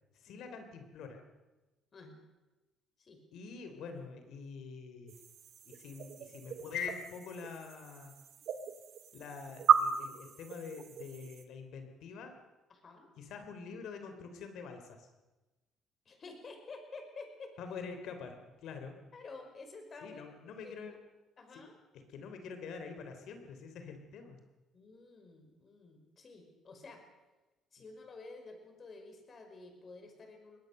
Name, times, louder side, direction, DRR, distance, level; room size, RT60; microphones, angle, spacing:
voice 1, 0.1-1.2 3.3-5.2 5.6-8.1 9.1-12.3 13.2-15.1 17.6-18.9 20.0-21.0 21.5-21.7 22.1-24.4, left 5 dB, 70° left, 7 dB, 3.3 m, -45 dB
sound 1, 5.1-11.4, right 8 dB, 60° right, 1.8 m, -34 dB
voice 2, 12.7-13.1 16.1-17.5 19.1-20.3 20.6-20.8 21.4-21.8 24.7-27.0 27.7-30.6, left 3 dB, 40° left, 5 dB, 5.3 m, -50 dB
22.0 x 18.5 x 6.6 m, 1.1 s
cardioid pair, 105°, 0 cm